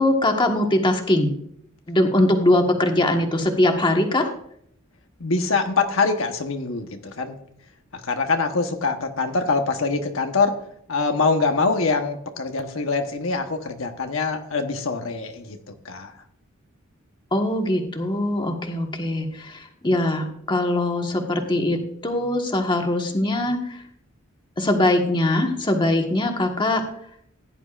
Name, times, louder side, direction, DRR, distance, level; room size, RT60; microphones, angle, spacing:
voice 1, 0.0-1.3 1.9-4.3 17.3-21.8 22.0-23.8 24.6-26.8, left 1 dB, 25° left, 3 dB, 1.4 m, -21 dB
voice 2, 5.2-7.4 7.9-10.6 10.9-15.6 15.8-16.1, left 4 dB, 70° left, 5 dB, 1.1 m, -24 dB
16.5 x 10.5 x 2.5 m, 0.68 s
head